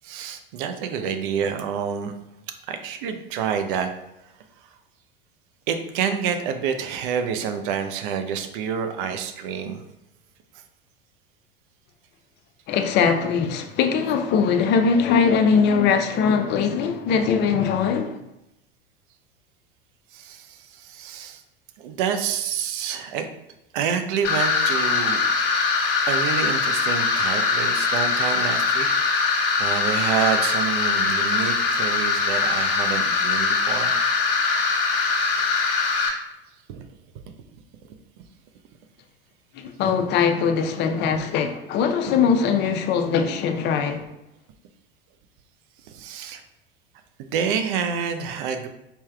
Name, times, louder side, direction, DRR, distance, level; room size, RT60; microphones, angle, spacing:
voice 1, 0.0-2.2 2.7-3.9 4.2-4.3 5.7-9.8 20.1-21.4 21.8-23.3 23.7-25.2 26.1-28.9 29.6-34.0 36.7-36.9 45.8-46.4 47.2-48.7, right 7 dB, 55° right, 0.6 m, -28 dB
voice 2, 12.7-18.2 39.5-44.1, left 6 dB, 35° left, 0.5 m, -21 dB
sound 1, 24.2-36.1, left 4 dB, 55° left, 1.1 m, -22 dB
4.4 x 3.3 x 2.2 m
hypercardioid pair, 85°, 30 cm